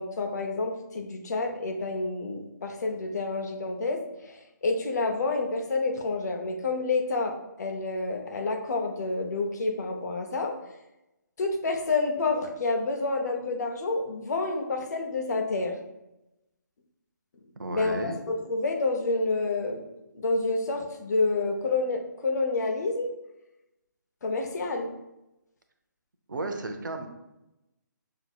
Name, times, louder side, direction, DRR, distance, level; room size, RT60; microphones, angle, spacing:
voice 1, 0.0-10.5 11.4-15.8 17.7-17.9 18.3-19.8 20.1-23.1 24.2-24.9, left 3 dB, 60° left, 4 dB, 0.7 m, -29 dB
voice 2, 17.6-18.2 26.3-27.1, right 2 dB, 80° right, 5 dB, 0.7 m, -33 dB
6.2 x 2.8 x 2.3 m, 0.93 s
figure-of-eight pair, 150°, 10 cm